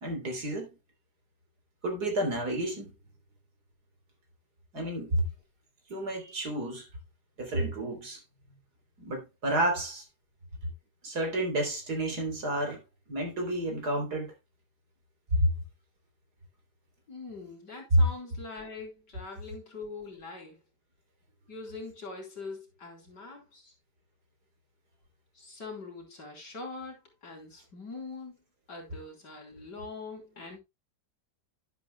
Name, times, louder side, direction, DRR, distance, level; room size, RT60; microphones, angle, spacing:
voice 1, 0.0-0.7 1.8-2.9 4.7-5.2 5.9-6.8 7.4-8.2 9.0-10.0 11.0-12.8 13.1-14.3 15.4-15.5 17.9-18.0, right 1 dB, 65° right, 4.0 m, -29 dB
voice 2, 17.1-20.6 21.5-23.7 25.3-28.3 28.7-30.6, left 3 dB, 75° left, 4.6 m, -43 dB
11.5 x 10.5 x 2.2 m
omnidirectional pair, 1.8 m